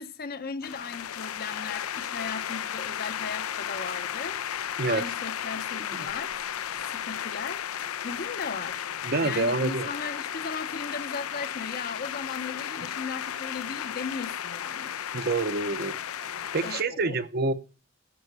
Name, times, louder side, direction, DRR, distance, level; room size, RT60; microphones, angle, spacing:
voice 1, 0.0-4.4 4.9-6.5 6.7-7.6 8.0-8.9 9.2-14.9 16.6-17.2, left 5 dB, 45° left, 0.7 m, -37 dB
sound 1, 0.6-16.8, left 9 dB, 90° left, 0.6 m, -34 dB
voice 2, 9.0-9.9 15.1-16.0 16.4-17.5, right 3 dB, 45° right, 0.7 m, -27 dB
11.0 x 5.6 x 6.6 m
head